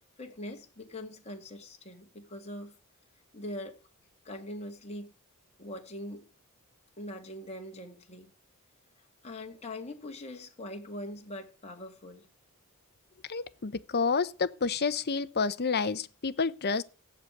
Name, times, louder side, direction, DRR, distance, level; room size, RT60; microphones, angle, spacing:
voice 1, 0.2-2.7 3.3-3.8 4.2-5.1 5.6-6.3 7.0-8.3 9.2-12.3, left 1 dB, 30° left, 2.3 m, -42 dB
voice 2, 13.3-16.8, left 5 dB, 45° left, 0.9 m, -29 dB
15.5 x 6.8 x 9.1 m
head